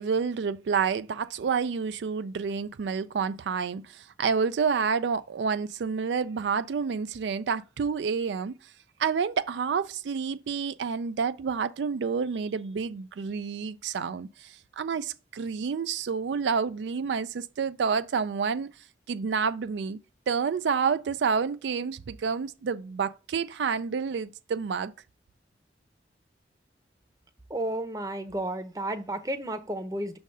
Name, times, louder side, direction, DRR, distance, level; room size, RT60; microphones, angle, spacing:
voice 1, 0.0-8.6 9.0-18.7 19.1-20.0 20.3-24.9, right 6 dB, 85° right, 0.4 m, -29 dB
voice 2, 27.5-30.2, right 1 dB, 20° right, 0.7 m, -32 dB
6.4 x 3.4 x 5.3 m
head